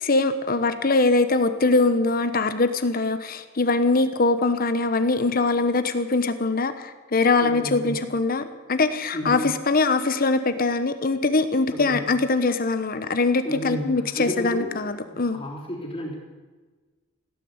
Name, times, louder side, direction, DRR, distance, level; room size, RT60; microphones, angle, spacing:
voice 1, 0.0-15.4, left 3 dB, 50° left, 10 dB, 1.0 m, -22 dB
voice 2, 7.4-8.0 9.1-9.5 11.7-12.1 13.4-14.8 15.0-16.2, equal, 30° left, -6 dB, 3.6 m, -32 dB
16.5 x 10.5 x 8.0 m, 1.3 s
head